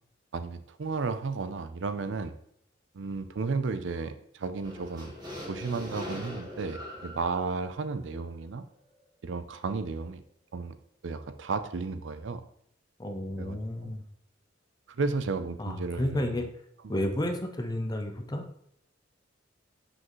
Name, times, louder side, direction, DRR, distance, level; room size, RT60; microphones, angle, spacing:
voice 1, 0.3-2.3 2.9-5.2 5.5-8.6 9.2-10.2 10.5-10.7 11.0-12.4 13.4-13.6 13.8-13.9 14.9-16.5 16.8-17.0, right 4 dB, 70° right, 11 dB, 0.5 m, -33 dB
sound 1, 4.6-8.7, left 1 dB, 20° right, 1.5 m, -42 dB
voice 2, 13.0-14.0 15.6-16.5 16.9-18.6, left 1 dB, 20° left, 6 dB, 0.6 m, -31 dB
6.0 x 5.2 x 3.0 m, 0.70 s
head